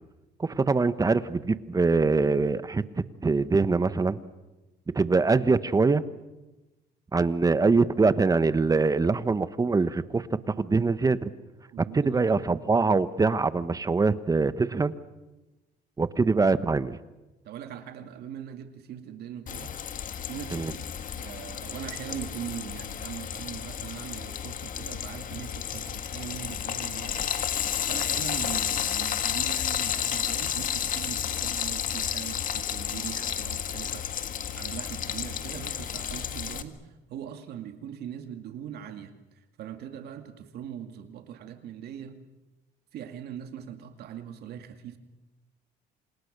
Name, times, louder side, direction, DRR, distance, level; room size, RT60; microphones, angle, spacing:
voice 1, 0.4-2.8 3.2-4.2 4.9-6.0 7.1-11.3 11.8-14.9 16.0-17.0 20.5-20.7, right 4 dB, 20° right, 14 dB, 1.2 m, -23 dB
voice 2, 11.7-12.3 17.4-19.7 20.3-27.3 27.9-34.1 34.6-42.2 42.9-45.0, right 9 dB, 70° right, 7 dB, 2.3 m, -41 dB
Frying (food), 19.5-36.6, left 9 dB, 50° left, 1.8 m, -32 dB
28.5 x 27.5 x 6.8 m, 1.1 s
cardioid pair, 110°, 17 cm